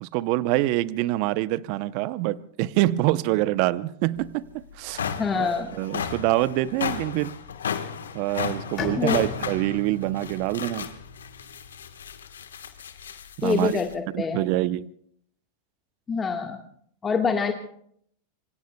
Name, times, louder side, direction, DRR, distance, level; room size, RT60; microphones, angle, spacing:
voice 1, 0.0-7.3 8.1-10.9 13.4-13.8 14.1-14.9, right 16 dB, 55° right, 0.6 m, -25 dB
sound 1, 4.2-4.3 4.7-13.9, left 7 dB, 80° left, 1.3 m, -34 dB
voice 2, 5.1-5.7 9.0-9.2 13.4-14.5 16.1-16.6 17.0-17.5, left 5 dB, 20° left, 1.5 m, -25 dB
Bowed string instrument, 8.8-12.4, left 4 dB, 40° left, 4.6 m, -38 dB
26.5 x 24.5 x 2.3 m
hypercardioid pair, 95°, 0 cm